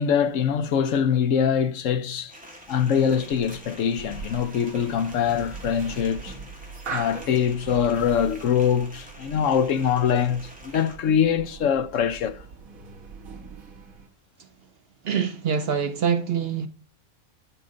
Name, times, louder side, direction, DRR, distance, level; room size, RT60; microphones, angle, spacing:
voice 1, 0.0-2.3 2.7-6.4 6.9-12.4, left 8 dB, 70° left, 1.0 m, -23 dB
sound 1, 2.3-11.0, equal, 5° right, 2.2 m, -47 dB
sound 2, 2.7-14.1, right 4 dB, 85° right, 1.7 m, -41 dB
voice 2, 15.0-16.7, right 7 dB, 55° right, 0.8 m, -25 dB
11.0 x 5.3 x 3.8 m
omnidirectional pair, 1.4 m